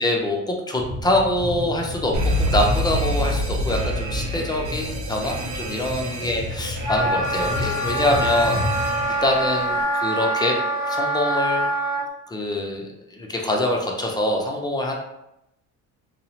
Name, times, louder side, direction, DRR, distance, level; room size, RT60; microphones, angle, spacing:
voice 1, 0.0-8.9 9.2-10.6 10.9-11.7 12.3-14.9, left 1 dB, 10° left, 1 dB, 0.4 m, -24 dB
sound 1, 0.8-9.1, left 1 dB, 50° right, 1.2 m, -32 dB
Alarm, 2.1-9.8, right 1 dB, 85° right, 0.6 m, -28 dB
Wind instrument woodwind instrument, 6.8-12.0, right 1 dB, 50° left, 0.6 m, -24 dB
2.7 x 2.0 x 2.8 m, 0.86 s
supercardioid pair, 95°, 38 cm